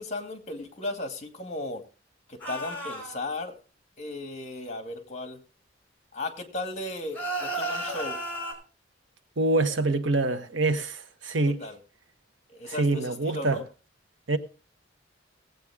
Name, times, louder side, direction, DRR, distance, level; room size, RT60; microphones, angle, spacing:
voice 1, 0.0-1.8 2.3-3.6 4.0-5.4 6.1-8.2 11.4-11.8 12.5-13.6, left 2 dB, 40° left, 2.1 m, -36 dB
sound 1, 2.4-3.2 7.1-8.5, right 1 dB, 10° left, 5.1 m, -33 dB
voice 2, 9.4-11.6 12.7-13.6 14.3-14.4, right 2 dB, 90° right, 1.1 m, -25 dB
18.0 x 8.5 x 3.6 m
head